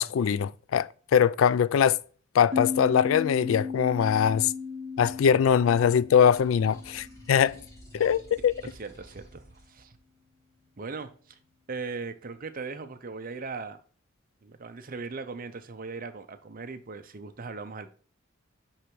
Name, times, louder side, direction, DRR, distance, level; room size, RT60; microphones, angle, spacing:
voice 1, 0.0-2.0 2.3-4.5 5.0-7.6 7.9-8.5, left 8 dB, 75° left, 0.3 m, -22 dB
sound 1, 2.5-7.8, left 5 dB, 30° right, 2.0 m, -36 dB
sound 2, 6.3-9.7, right 1 dB, 15° left, 2.1 m, -51 dB
voice 2, 8.6-9.9 10.8-11.4 11.7-13.8 14.4-17.9, right 4 dB, 45° right, 0.7 m, -39 dB
10.0 x 3.4 x 3.0 m
head